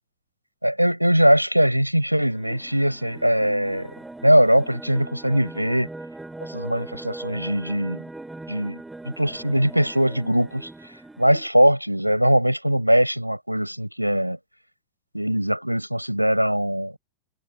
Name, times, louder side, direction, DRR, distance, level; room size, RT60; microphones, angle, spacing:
voice 1, 0.6-3.9 4.2-5.9 6.5-8.0 8.5-10.7 11.2-14.4 15.1-17.0, equal, 90° right, 7.8 m, -21 dB
sound 1, 2.3-11.5, right 2 dB, 5° right, 3.9 m, -40 dB
figure-of-eight pair, 90°, 0 cm